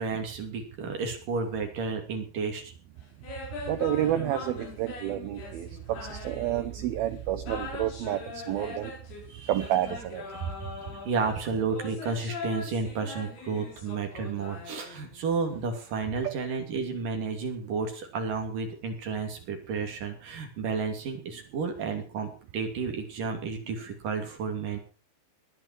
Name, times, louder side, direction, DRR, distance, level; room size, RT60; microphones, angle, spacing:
voice 1, 0.0-2.7 9.3-9.7 10.3-24.8, right 4 dB, 50° right, 3 dB, 4.1 m, -32 dB
sound 1, 3.2-7.0 7.4-15.3, left 4 dB, 55° left, 6.7 m, -41 dB
voice 2, 3.7-8.9 9.5-10.2 16.2-16.3, right 12 dB, 90° right, 9 dB, 2.1 m, -29 dB
20.5 x 10.0 x 4.7 m, 0.35 s
omnidirectional pair, 5.5 m